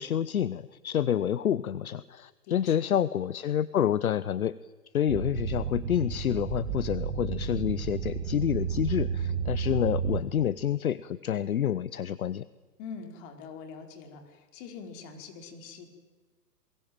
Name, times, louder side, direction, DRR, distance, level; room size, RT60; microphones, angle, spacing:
voice 1, 0.0-4.5 4.9-12.4, left 9 dB, 60° left, 18 dB, 1.0 m, -28 dB
voice 2, 2.4-2.9 12.8-15.9, left 5 dB, 30° left, 5 dB, 4.8 m, -44 dB
sound 1, 5.1-10.2, right 7 dB, 20° right, 2.5 m, -32 dB
28.0 x 22.5 x 9.0 m, 1.3 s
figure-of-eight pair, 130°, 49 cm